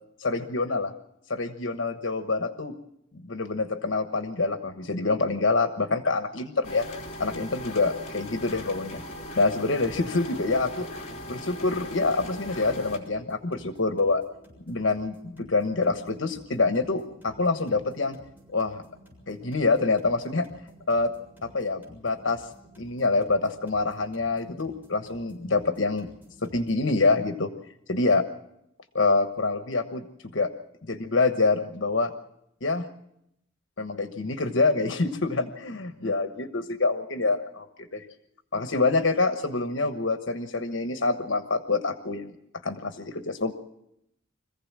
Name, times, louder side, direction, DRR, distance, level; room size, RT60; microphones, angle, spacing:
voice 1, 0.2-0.9 1.3-2.7 3.1-6.9 7.2-9.0 9.3-10.9 11.3-14.2 14.7-18.2 18.5-18.8 19.3-20.5 20.9-21.1 21.4-22.5 22.8-26.1 26.4-27.5 27.9-28.2 28.9-30.5 30.8-32.1 32.6-32.8 33.8-38.1 38.5-42.3 42.6-43.5, left 3 dB, 70° left, 8 dB, 1.2 m, -26 dB
sound 1, 6.6-13.0, left 1 dB, 35° left, 3.5 m, -39 dB
sound 2, 8.4-26.9, equal, 10° right, 7.2 m, -53 dB
25.5 x 15.5 x 7.5 m, 0.79 s
head